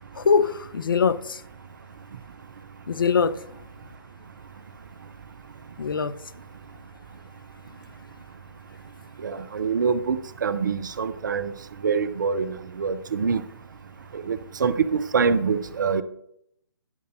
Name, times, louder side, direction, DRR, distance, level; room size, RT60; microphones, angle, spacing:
voice 1, 0.2-1.4 2.9-3.4 5.8-6.1, left 5 dB, 55° left, 0.5 m, -22 dB
voice 2, 9.2-11.5 11.8-13.4 14.1-16.0, right 5 dB, 50° right, 0.5 m, -25 dB
10.5 x 6.5 x 2.6 m
figure-of-eight pair, 135°, 13 cm